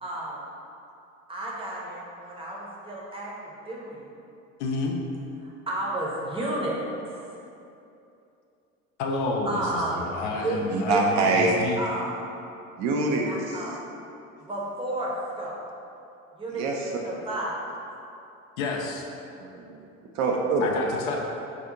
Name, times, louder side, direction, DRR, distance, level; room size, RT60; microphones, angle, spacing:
voice 1, 0.0-0.5 1.3-4.1 5.7-6.8 7.0-7.1 9.5-9.9 10.4-10.6 10.9-11.3 11.8-12.4 13.2-13.7 14.4-15.1 15.4-15.6 16.3-17.7, right 1 dB, 15° right, -5 dB, 0.8 m, -32 dB
voice 2, 4.6-5.0 9.0-11.8 18.6-19.1 20.6-21.2, left 3 dB, 60° left, 0 dB, 0.6 m, -30 dB
voice 3, 10.7-11.5 12.8-13.6 16.5-16.8 19.4-19.8 20.1-20.7, right 3 dB, 45° right, 0 dB, 0.5 m, -24 dB
4.0 x 2.4 x 3.7 m, 2.7 s
figure-of-eight pair, 60°, 40 cm